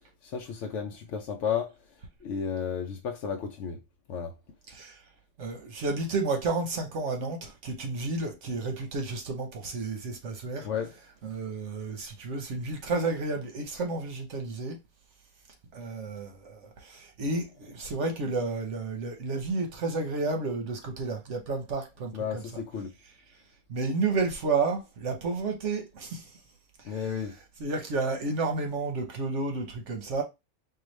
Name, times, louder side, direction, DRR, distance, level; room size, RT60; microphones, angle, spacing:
voice 1, 0.2-1.7 2.2-3.8 4.1-4.3 10.6-10.9 22.1-22.9 26.8-27.4, left 7 dB, 80° left, 0.9 m, -33 dB
voice 2, 4.7-5.0 5.4-10.7 11.2-14.8 15.7-22.4 23.7-26.4 26.8-27.1 27.6-30.2, right 3 dB, 80° right, 1.3 m, -31 dB
4.7 x 2.3 x 3.2 m
omnidirectional pair, 1.2 m